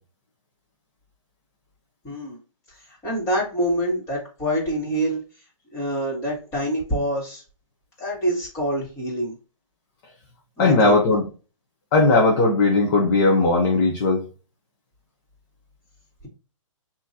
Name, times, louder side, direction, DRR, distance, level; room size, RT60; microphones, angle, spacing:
voice 1, 2.0-2.4 2.9-5.2 5.7-7.4 8.0-9.3 10.6-11.1, equal, 15° left, 2.3 m, -26 dB
voice 2, 10.6-11.3 11.9-14.2, left 3 dB, 35° left, 0.9 m, -18 dB
6.0 x 3.1 x 2.8 m
hypercardioid pair, 155°, 17 cm